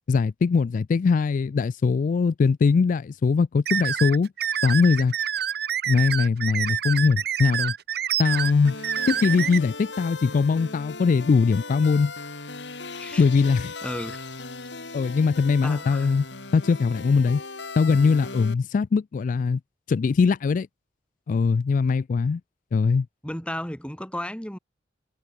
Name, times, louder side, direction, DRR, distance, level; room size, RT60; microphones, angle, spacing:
voice 1, 0.1-4.3 4.6-5.1 5.9-7.7 8.2-8.8 9.1-12.1 13.2-13.7 14.9-16.3 16.5-17.4 17.8-19.6 19.9-20.7 21.3-22.4 22.7-23.1, left 5 dB, 45° left, 0.3 m, -21 dB
sound 1, 3.7-9.6, right 9 dB, 60° right, 1.1 m, -27 dB
sound 2, 8.3-18.5, left 3 dB, 80° left, 4.1 m, -38 dB
voice 2, 12.9-13.2 13.8-14.2 15.6-16.1 23.2-24.6, left 1 dB, 5° left, 2.1 m, -34 dB
head